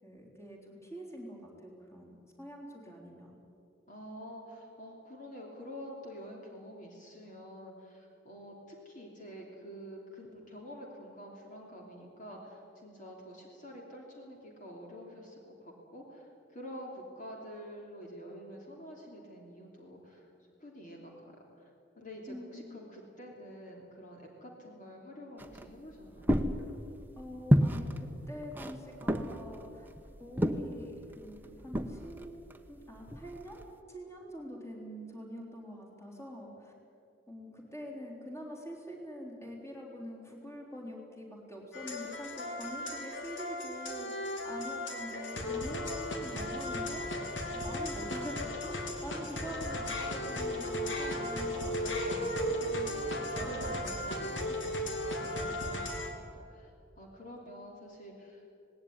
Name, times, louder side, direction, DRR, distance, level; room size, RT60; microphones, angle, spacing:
voice 1, 0.0-3.3 22.3-22.8 27.2-29.9 30.2-32.4 32.7-33.6 33.9-36.7 37.3-47.1 47.5-51.8 52.6-53.7, equal, 15° left, -1 dB, 3.9 m, -45 dB
voice 2, 3.9-20.3 20.6-21.7 22.0-26.4 51.4-52.6 53.3-56.7 57.0-58.5, equal, 45° left, -1 dB, 3.1 m, -48 dB
sound 1, 25.4-33.7, equal, 10° right, 1.0 m, -32 dB
sound 2, 41.7-56.1, left 1 dB, 80° left, 2.8 m, -36 dB
19.0 x 17.5 x 9.8 m, 2.6 s
head